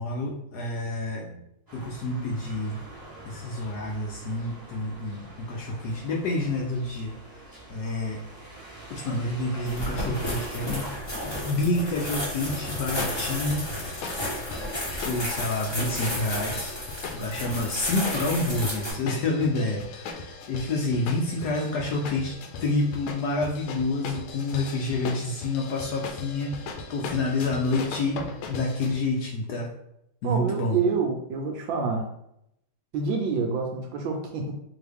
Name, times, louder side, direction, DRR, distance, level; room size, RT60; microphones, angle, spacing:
voice 1, 0.0-1.4 1.7-2.8 3.2-7.4 7.7-8.2 8.9-10.9 11.2-14.6 14.9-16.8 17.1-29.7 30.2-30.8, left 2 dB, 70° left, -1 dB, 1.0 m, -29 dB
sound 1, 1.7-11.0, right 2 dB, 15° right, 0.7 m, -44 dB
sound 2, 9.6-18.9, left 1 dB, 20° left, 0.7 m, -32 dB
sound 3, 12.5-28.9, left 4 dB, 90° left, 1.5 m, -39 dB
voice 2, 30.2-32.1 32.9-34.5, right 4 dB, 75° right, 2 dB, 1.2 m, -27 dB
3.9 x 3.0 x 3.4 m, 0.78 s
omnidirectional pair, 2.2 m